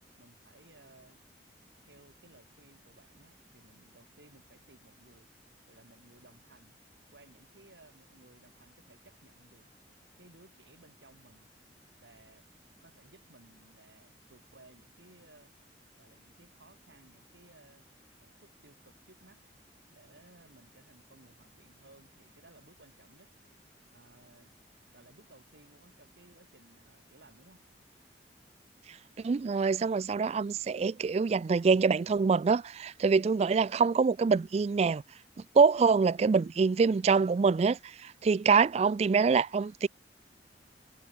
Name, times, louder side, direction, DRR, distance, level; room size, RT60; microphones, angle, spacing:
voice 1, 0.2-1.2 1.8-5.3 5.7-6.8 7.1-9.7 10.2-11.5 12.0-12.5 12.8-15.5 16.0-17.8 18.2-19.4 19.9-23.3 23.9-24.5 24.9-27.6, right 2 dB, 80° right, 4.3 m, -59 dB
voice 2, 28.9-35.0 35.5-39.9, right 5 dB, 35° right, 0.3 m, -25 dB
head